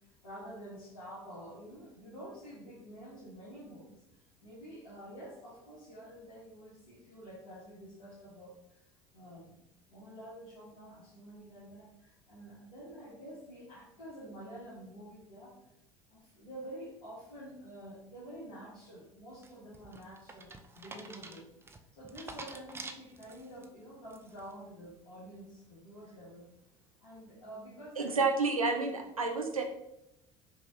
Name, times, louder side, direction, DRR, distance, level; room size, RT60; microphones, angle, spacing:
voice 1, 0.0-8.8 9.1-9.6 9.9-15.6 16.1-21.5 21.9-26.5 27.0-28.3, equal, 70° left, -10 dB, 1.5 m, -49 dB
sound 1, 19.4-23.6 24.1-24.5, right 3 dB, 15° right, 0.4 m, -47 dB
voice 2, 28.0-29.6, right 4 dB, 85° right, 3 dB, 0.4 m, -30 dB
5.3 x 3.0 x 2.7 m, 0.82 s
figure-of-eight pair, 65°, 17 cm